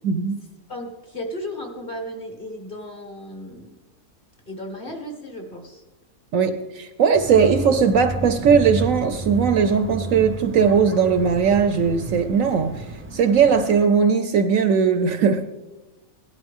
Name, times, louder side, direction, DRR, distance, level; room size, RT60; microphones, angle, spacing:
voice 1, 0.0-0.4 6.3-12.8 13.1-15.4, right 6 dB, 65° right, 9 dB, 1.0 m, -19 dB
voice 2, 0.7-3.8 4.5-5.8, left 1 dB, 35° left, 3 dB, 1.8 m, -35 dB
sound 1, 7.1-13.9, right 2 dB, 15° right, 0.5 m, -32 dB
18.0 x 12.0 x 3.6 m, 1.1 s
omnidirectional pair, 1.6 m